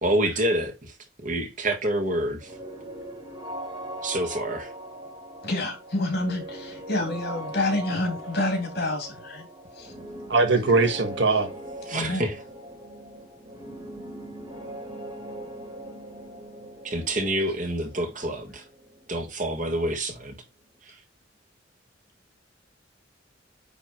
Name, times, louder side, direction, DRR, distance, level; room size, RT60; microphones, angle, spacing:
voice 1, 0.0-2.5 4.0-4.7 11.9-12.3 16.8-18.6 19.1-20.3 20.8-21.0, right 1 dB, 45° right, 1.8 m, -27 dB
sound 1, 2.4-20.0, right 1 dB, 25° right, 2.6 m, -40 dB
voice 2, 5.4-9.5 9.7-9.9 11.9-12.3, left 2 dB, 55° left, 3.1 m, -28 dB
voice 3, 10.3-11.5, right 3 dB, 70° right, 1.7 m, -21 dB
9.8 x 3.7 x 4.6 m
head